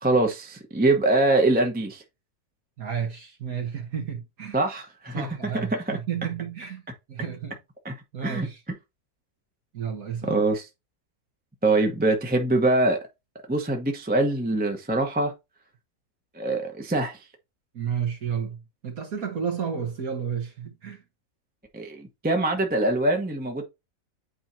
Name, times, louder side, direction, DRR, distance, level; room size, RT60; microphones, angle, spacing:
voice 1, 0.0-2.0 4.5-6.0 7.8-7.9 8.2-8.5 10.3-10.6 11.6-13.0 13.5-15.3 16.4-17.2 21.7-23.6, right 2 dB, 5° right, 0.9 m, -23 dB
voice 2, 2.8-4.6 5.1-6.8 7.1-7.6 8.1-8.6 9.7-10.4 17.7-18.6 18.8-21.0, right 7 dB, 65° right, 1.8 m, -31 dB
8.9 x 4.5 x 2.7 m
omnidirectional pair, 1.6 m